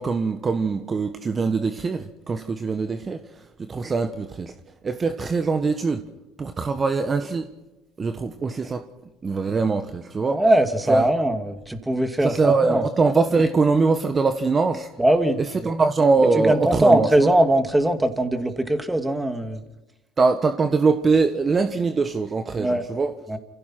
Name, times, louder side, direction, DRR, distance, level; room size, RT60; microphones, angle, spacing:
voice 1, 0.0-4.5 4.8-6.0 6.4-7.5 8.0-8.9 9.2-10.4 10.9-11.0 12.2-14.9 15.6-17.3 20.2-23.1, right 4 dB, 30° right, 1.4 m, -22 dB
voice 2, 10.3-12.8 15.0-15.4 16.3-19.6 22.6-22.8 23.3-23.4, right 1 dB, 10° right, 2.5 m, -21 dB
29.0 x 16.5 x 6.0 m
hypercardioid pair, 75°, 0 cm